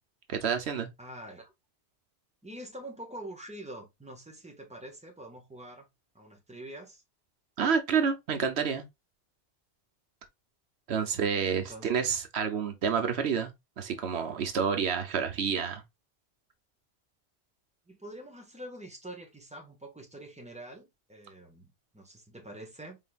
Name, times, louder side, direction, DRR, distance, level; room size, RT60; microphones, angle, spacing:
voice 1, 0.3-0.9 7.6-8.8 10.9-13.5 13.8-15.8, right 6 dB, 85° right, 1.1 m, -29 dB
voice 2, 1.0-1.5 2.4-5.9 6.1-7.0 11.1-11.9 17.9-23.0, right 1 dB, 5° right, 1.4 m, -45 dB
4.4 x 3.8 x 2.3 m
omnidirectional pair, 1.1 m